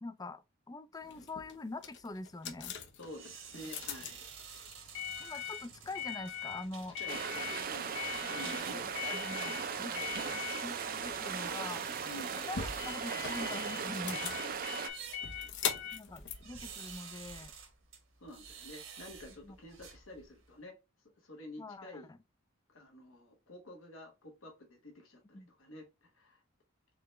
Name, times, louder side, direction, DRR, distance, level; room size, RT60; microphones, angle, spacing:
voice 1, 0.0-2.7 5.2-7.0 8.4-9.9 10.3-11.9 12.3-14.3 14.7-15.0 15.9-17.6 19.4-19.6 21.6-22.2 25.3-25.5, left 2 dB, 20° left, 0.4 m, -44 dB
sound 1, 1.0-17.4, left 8 dB, 60° left, 0.7 m, -42 dB
voice 2, 2.9-4.3 6.9-8.9 9.9-10.4 12.0-12.4 14.4-15.6 18.2-20.8 21.2-22.1 22.7-26.4, left 1 dB, 75° left, 1.1 m, -50 dB
sound 2, 3.0-20.5, right 6 dB, 70° right, 1.2 m, -51 dB
sound 3, 7.1-14.9, right 6 dB, 45° right, 0.5 m, -38 dB
3.9 x 3.3 x 3.0 m
head